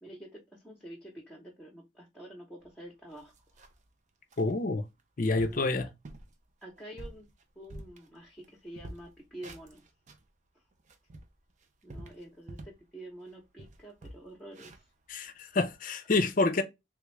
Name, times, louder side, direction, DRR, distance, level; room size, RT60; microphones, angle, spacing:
voice 1, 0.0-3.3 5.4-5.8 6.6-7.3 7.5-9.9 11.8-14.8, right 1 dB, 5° left, 0.8 m, -48 dB
sound 1, 2.6-2.7 3.1-3.9 4.3-4.5 5.0-5.1 5.4-5.7 6.0-6.3 6.8-8.5 8.7-10.3 10.7-12.9 13.2-13.3 13.6-15.7, right 1 dB, 40° right, 0.5 m, -48 dB
voice 2, 4.4-4.8 5.2-5.9 15.1-16.6, left 3 dB, 45° left, 0.5 m, -28 dB
3.4 x 2.4 x 3.1 m
head